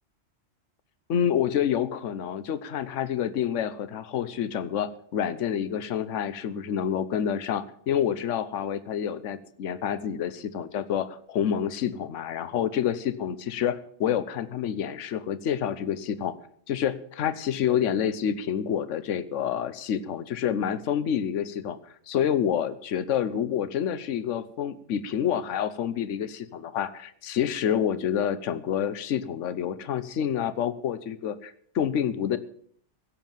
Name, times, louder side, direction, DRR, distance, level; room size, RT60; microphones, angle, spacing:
voice 1, 1.1-16.4 16.7-32.4, left 9 dB, 70° left, 14 dB, 1.1 m, -28 dB
16.0 x 7.4 x 7.3 m, 0.63 s
omnidirectional pair, 1.3 m